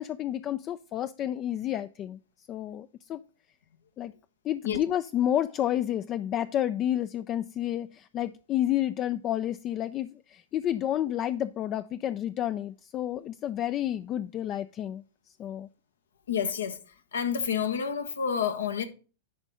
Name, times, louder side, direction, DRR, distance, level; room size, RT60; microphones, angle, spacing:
voice 1, 0.0-2.2 2.5-3.2 4.0-4.1 4.4-15.0 15.4-15.7, left 11 dB, 35° left, 0.4 m, -30 dB
voice 2, 16.3-16.8 17.1-18.8, left 7 dB, 85° left, 1.1 m, -29 dB
10.5 x 3.6 x 5.4 m
hypercardioid pair, 110°, 0 cm